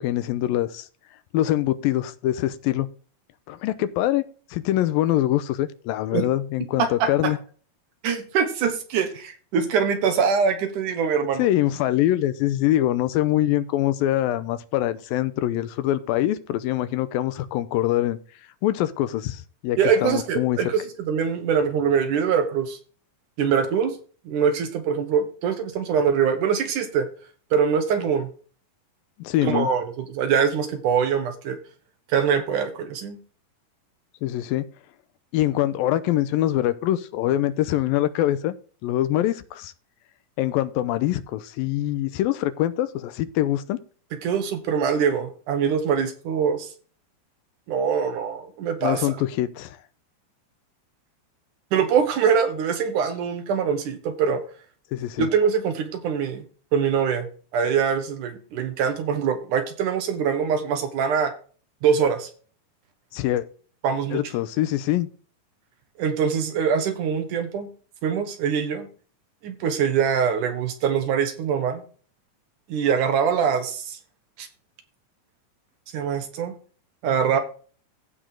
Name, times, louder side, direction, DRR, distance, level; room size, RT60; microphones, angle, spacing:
voice 1, 0.0-0.9 1.3-2.9 3.5-4.2 4.5-7.4 11.4-18.2 18.6-20.6 29.2-29.7 34.2-34.6 35.3-38.5 38.8-39.7 40.4-43.8 48.8-49.8 54.9-55.3 63.1-63.5 64.1-65.1, left 13 dB, 85° left, 13 dB, 2.5 m, -24 dB
voice 2, 6.8-7.3 8.0-11.5 19.8-22.8 23.4-24.0 24.3-27.1 27.5-28.3 29.4-31.6 32.1-33.2 44.2-46.7 47.7-49.2 51.7-54.4 55.2-56.4 56.7-61.3 61.8-62.3 63.8-64.2 66.0-67.7 68.0-68.9 69.4-71.8 72.7-74.0 74.4-74.5 75.9-76.5 77.0-77.4, right 7 dB, 65° right, 7 dB, 2.5 m, -23 dB
15.5 x 5.1 x 3.8 m, 0.39 s
omnidirectional pair, 4.2 m